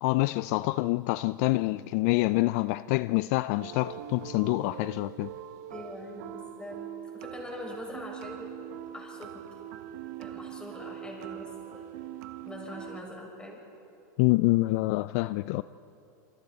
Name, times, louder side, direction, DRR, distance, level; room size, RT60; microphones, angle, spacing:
voice 1, 0.0-5.3 14.2-15.6, left 20 dB, 55° left, 0.4 m, -26 dB
sound 1, 3.6-13.0, right 11 dB, 65° right, 1.3 m, -42 dB
voice 2, 5.7-8.5 8.9-9.5 10.2-11.9 12.4-13.6, left 1 dB, 10° left, 6.3 m, -43 dB
27.5 x 26.0 x 4.2 m
hypercardioid pair, 115°, 10 cm